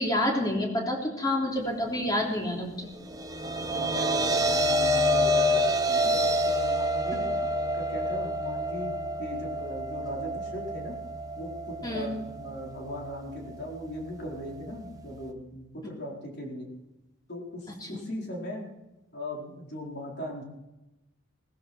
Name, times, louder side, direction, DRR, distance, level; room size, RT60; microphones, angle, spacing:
voice 1, 0.0-2.9 11.8-12.1, left 1 dB, 20° left, -1 dB, 3.5 m, -28 dB
sound 1, 3.0-15.3, equal, 15° right, 1.2 m, -28 dB
voice 2, 3.4-7.2 7.7-10.9 11.3-16.7 17.3-18.7 19.1-20.4, left 1 dB, 50° left, -1 dB, 4.5 m, -39 dB
17.5 x 15.0 x 4.5 m, 0.99 s
head